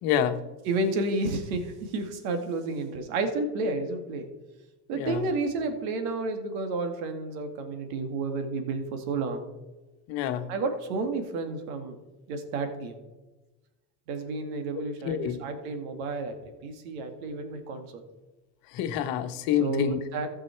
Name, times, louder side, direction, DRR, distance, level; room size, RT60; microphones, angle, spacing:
voice 1, 0.0-0.4 4.9-5.3 10.1-10.5 15.0-15.4 18.7-20.0, left 9 dB, 60° left, 9 dB, 1.2 m, -27 dB
voice 2, 0.7-4.3 4.9-9.4 10.5-12.0 12.3-13.0 14.1-17.9 19.6-20.3, right 3 dB, 70° right, 6 dB, 2.2 m, -31 dB
15.0 x 6.2 x 4.5 m, 1.1 s
supercardioid pair, 135°, 42 cm